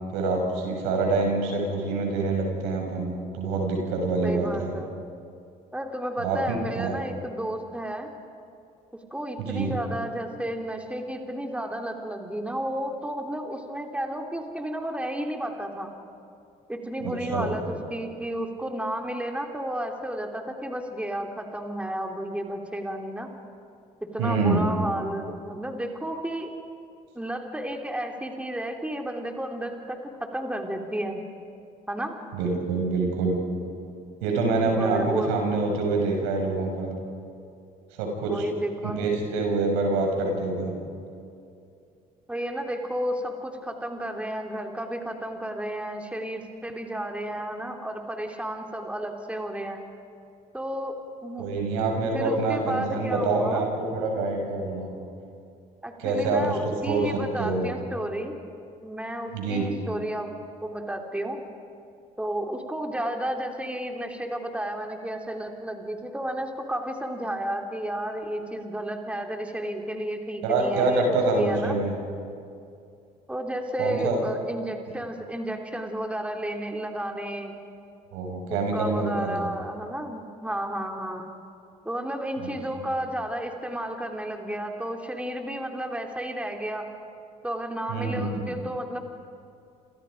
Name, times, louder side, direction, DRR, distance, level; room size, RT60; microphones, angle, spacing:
voice 1, 0.1-4.7 6.2-6.9 9.4-9.8 17.0-17.5 24.2-24.6 32.3-33.4 34.2-36.9 37.9-38.4 38.8-40.7 51.4-54.9 56.0-57.7 59.3-59.7 70.4-71.9 73.8-74.2 78.1-79.4 82.4-82.5 82.8-82.9 87.9-88.4, right 3 dB, 75° right, 1 dB, 6.2 m, -26 dB
voice 2, 4.2-5.0 5.7-8.1 9.1-15.9 16.7-23.3 24.0-26.5 27.1-31.2 31.9-32.1 34.8-35.3 38.3-39.1 42.3-49.8 50.5-51.5 52.1-53.7 55.8-58.3 58.8-60.3 60.6-61.4 62.2-71.7 73.3-77.6 78.5-81.3 81.8-86.9 87.4-89.0, right 1 dB, 5° right, 3 dB, 2.7 m, -32 dB
28.0 x 27.5 x 5.2 m, 2.5 s
hypercardioid pair, 65°, 20 cm